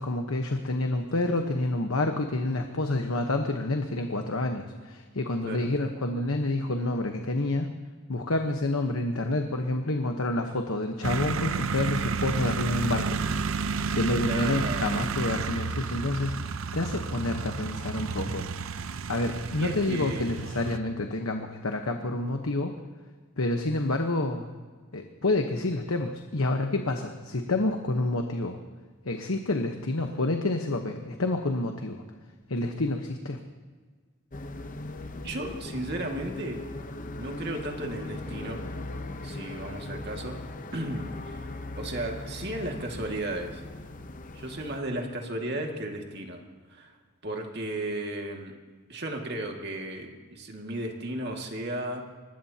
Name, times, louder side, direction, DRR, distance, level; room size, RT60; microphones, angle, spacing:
voice 1, 0.0-7.7 8.1-13.6 13.9-16.4 16.7-18.5 19.1-22.7 23.4-24.5 24.9-28.6 29.0-32.0 32.5-33.4, left 2 dB, 80° left, 4 dB, 1.1 m, -28 dB
sound 1, 11.0-20.8, right 5 dB, 75° right, 0.6 m, -31 dB
voice 2, 14.3-15.0 19.6-20.3 35.2-36.6 37.2-38.6 39.2-40.4 40.7-41.5 41.8-43.6 44.3-46.4 46.7-46.9 47.2-48.5 48.9-52.0, right 1 dB, 50° right, 2 dB, 2.2 m, -34 dB
sound 2, 34.3-44.8, left 2 dB, 40° left, 0.8 m, -39 dB
24.5 x 20.0 x 2.9 m, 1.5 s
head